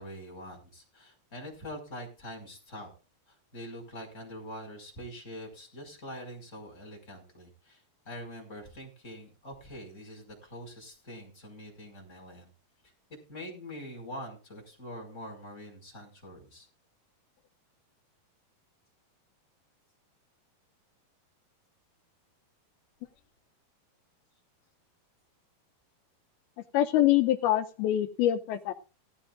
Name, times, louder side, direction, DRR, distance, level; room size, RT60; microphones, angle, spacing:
voice 1, 0.0-2.9 3.3-12.5 13.1-16.7, equal, 20° left, 1 dB, 5.5 m, -44 dB
voice 2, 26.7-28.7, left 13 dB, 85° left, 7 dB, 2.6 m, -25 dB
16.5 x 14.5 x 2.5 m, 0.33 s
omnidirectional pair, 4.4 m